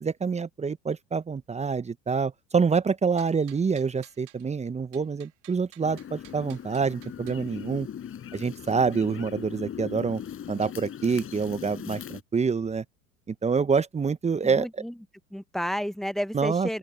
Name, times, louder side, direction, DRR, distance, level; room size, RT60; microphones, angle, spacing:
voice 1, 0.0-7.9 8.3-10.2 10.5-12.8 13.3-14.7 16.3-16.7, right 5 dB, 20° right, 1.2 m, -26 dB
sound 1, 3.2-4.5 4.9-7.4, right 15 dB, 70° right, 3.2 m, -54 dB
sound 2, 5.8-12.2, left 9 dB, 35° left, 4.9 m, -39 dB
voice 2, 14.4-15.0 15.3-16.8, equal, ahead, 0.9 m, -31 dB
open air
hypercardioid pair, 75°, 37 cm